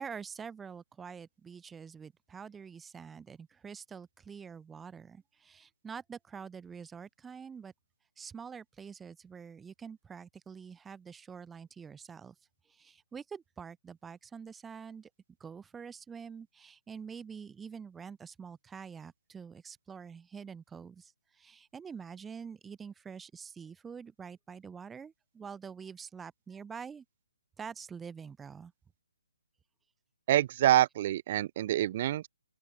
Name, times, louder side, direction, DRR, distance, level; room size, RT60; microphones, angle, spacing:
voice 1, 0.0-7.7 8.2-12.3 12.7-15.1 15.4-21.1 21.4-27.0 27.6-28.7, right 6 dB, 10° right, 1.6 m, -46 dB
voice 2, 30.3-32.3, right 13 dB, 40° right, 1.2 m, -26 dB
open air
hypercardioid pair, 145°, 0 cm